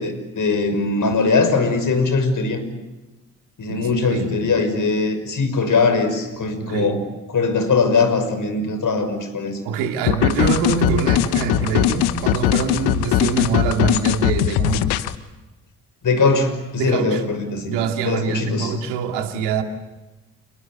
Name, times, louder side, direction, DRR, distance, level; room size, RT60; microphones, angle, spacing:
voice 1, 0.0-2.6 3.6-7.0 7.3-9.6 16.0-17.8 18.0-18.7, left 4 dB, 45° left, 9 dB, 6.1 m, -20 dB
voice 2, 3.7-4.3 6.6-7.0 9.6-15.0 16.8-17.2 17.6-19.6, right 6 dB, 70° right, 5 dB, 2.6 m, -24 dB
sound 1, 10.1-15.2, left 13 dB, 65° left, 1.2 m, -20 dB
28.5 x 21.5 x 8.3 m, 1.1 s
figure-of-eight pair, 40°, 42 cm